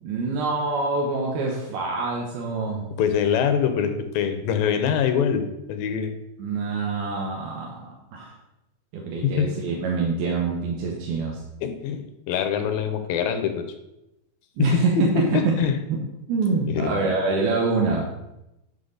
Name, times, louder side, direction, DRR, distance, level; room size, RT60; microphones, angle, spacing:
voice 1, 0.0-2.8 6.4-7.8 8.1-8.3 8.9-11.4 14.6-15.6 15.9-16.0 16.3-18.1, right 4 dB, 90° right, -2 dB, 3.0 m, -25 dB
voice 2, 3.0-6.1 9.2-9.5 11.6-13.6 14.6-15.0 15.3-15.8 16.7-17.0, left 7 dB, 80° left, 7 dB, 2.4 m, -24 dB
10.0 x 5.6 x 3.9 m, 0.88 s
omnidirectional pair, 4.3 m